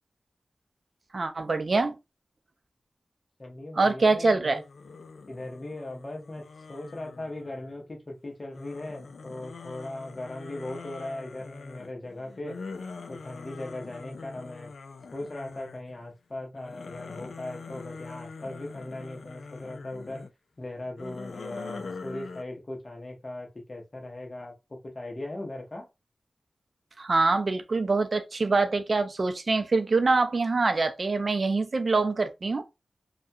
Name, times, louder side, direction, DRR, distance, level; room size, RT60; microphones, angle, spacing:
voice 1, 1.1-2.0 3.7-4.6 27.0-32.6, right 3 dB, 55° right, 0.5 m, -24 dB
voice 2, 3.4-4.6 5.3-12.6 13.1-14.7 15.1-20.3 20.6-25.8, left 1 dB, 40° left, 0.9 m, -39 dB
sound 1, 4.5-7.9 8.5-16.0 16.4-20.3 20.9-22.4, left 4 dB, 80° left, 0.3 m, -43 dB
2.4 x 2.2 x 2.7 m
cardioid pair, 60°, 0 cm